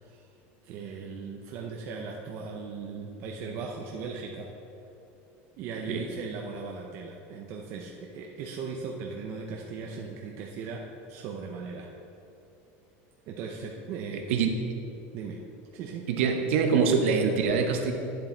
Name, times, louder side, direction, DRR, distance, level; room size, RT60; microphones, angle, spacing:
voice 1, 0.6-4.5 5.6-11.9 13.3-14.4 15.1-15.4 15.7-16.1, right 4 dB, 40° right, 0 dB, 0.6 m, -38 dB
voice 2, 16.1-17.9, right 5 dB, 85° right, 5 dB, 1.0 m, -24 dB
10.5 x 7.2 x 3.9 m, 2.7 s
cardioid pair, 180°, 7 cm